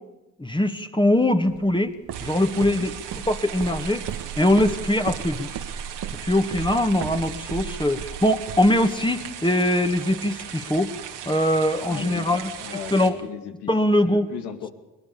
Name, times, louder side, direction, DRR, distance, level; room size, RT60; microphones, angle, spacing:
voice 1, 0.4-1.9 2.2-2.9 3.3-4.1 4.4-5.5 6.2-10.9 11.3-12.5 12.9-13.2 13.7-14.3, left 1 dB, 10° left, 6 dB, 2.0 m, -22 dB
Walk footsteps, 1.5-9.4, right 8 dB, 65° right, 1.6 m, -36 dB
sound 1, 2.1-13.1, right 9 dB, 85° right, 2.7 m, -38 dB
voice 2, 2.5-2.9 11.8-13.7 14.0-14.7, left 8 dB, 85° left, 7 dB, 2.6 m, -36 dB
22.0 x 20.0 x 7.0 m, 1.0 s
supercardioid pair, 65°, 39 cm